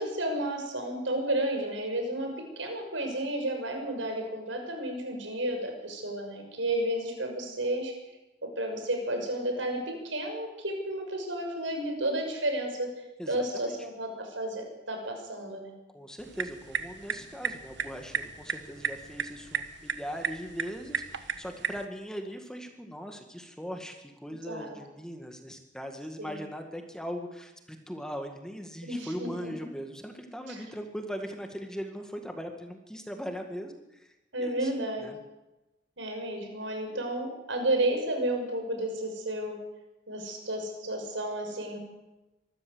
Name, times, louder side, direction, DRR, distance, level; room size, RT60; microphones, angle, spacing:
voice 1, 0.0-2.3 2.6-7.9 8.4-12.9 13.3-15.7 24.5-24.7 26.2-26.4 28.8-29.5 30.5-30.6 34.3-35.1 36.0-39.6 40.1-41.8, right 1 dB, 90° right, 3 dB, 6.1 m, -32 dB
voice 2, 13.2-13.8 15.9-34.7 35.0-35.2, equal, 5° left, 4 dB, 1.9 m, -40 dB
sound 1, 16.2-21.9, right 6 dB, 70° right, 1.3 m, -35 dB
24.5 x 13.5 x 8.0 m, 1.0 s
head